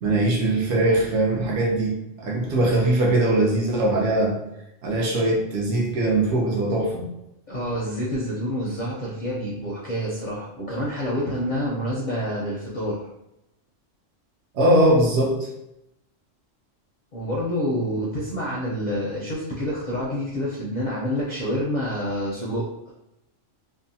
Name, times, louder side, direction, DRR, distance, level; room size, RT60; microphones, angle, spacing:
voice 1, 0.0-4.4 4.8-7.1 14.5-15.5, right 1 dB, 65° right, -3 dB, 0.9 m, -21 dB
voice 2, 7.5-13.0 17.1-22.7, equal, 55° left, -5 dB, 0.5 m, -27 dB
2.7 x 2.1 x 2.6 m, 0.86 s
omnidirectional pair, 1.3 m